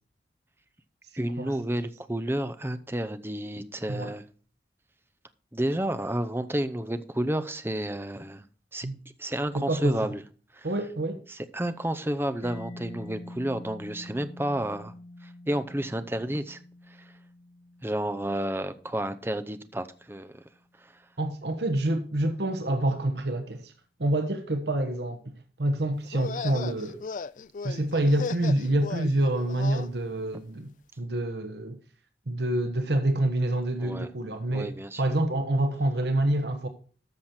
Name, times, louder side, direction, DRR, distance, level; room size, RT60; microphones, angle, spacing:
voice 1, 1.2-4.2 5.5-8.5 8.7-8.9 9.2-10.2 10.5-10.7 11.3-14.9 15.2-17.2 17.8-21.2 33.8-34.1 34.5-35.2, right 1 dB, 15° right, 0.7 m, -31 dB
voice 2, 9.5-10.0 10.6-11.2 21.2-23.7 24.0-25.3 25.6-27.0 27.6-30.7 31.0-31.8 32.3-34.7 35.0-36.7, right 1 dB, 70° right, 1.1 m, -27 dB
Mallet percussion, 12.4-19.9, left 1 dB, 25° left, 0.9 m, -46 dB
sound 1, 26.0-29.9, left 5 dB, 45° left, 0.4 m, -37 dB
13.0 x 6.4 x 4.3 m
head